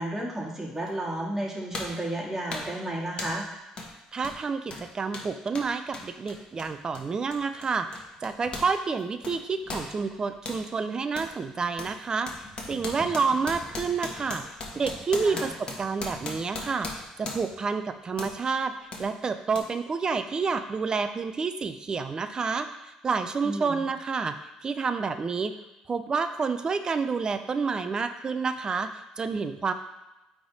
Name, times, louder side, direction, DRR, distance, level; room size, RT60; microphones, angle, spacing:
voice 1, 0.0-3.4 15.2-15.5 23.4-23.8, right 1 dB, 15° right, -3 dB, 1.9 m, -32 dB
sound 1, 0.9-1.0 1.7-2.0 2.5-2.8 3.2-3.5 3.8-3.9 4.2-8.7 9.0-10.6 11.2-11.3 11.8-17.6 18.2-18.4 18.9-19.1 19.5-19.6, left 2 dB, 45° left, 1.3 m, -38 dB
voice 2, 4.1-18.7 19.0-25.5 25.9-29.7, right 5 dB, 30° right, 9 dB, 0.5 m, -29 dB
8.5 x 3.5 x 4.1 m, 0.99 s
supercardioid pair, 90°, 2 cm